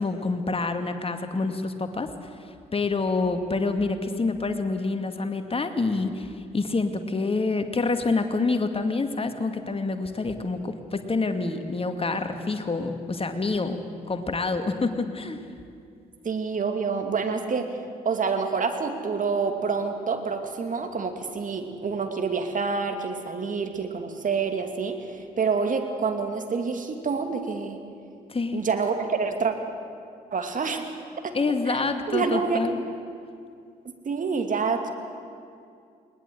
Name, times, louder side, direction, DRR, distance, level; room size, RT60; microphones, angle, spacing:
voice 1, 0.0-2.1 2.7-13.8 14.1-15.4 28.3-28.6 31.3-32.8, left 3 dB, 30° left, 7 dB, 2.1 m, -27 dB
voice 2, 16.2-17.7 18.0-27.8 28.5-29.5 30.3-30.8 31.2-31.3 31.7-31.8 32.1-32.6 33.8-34.9, right 5 dB, 40° right, 5 dB, 2.5 m, -27 dB
21.0 x 19.5 x 7.9 m, 2.4 s
figure-of-eight pair, 40°, 20 cm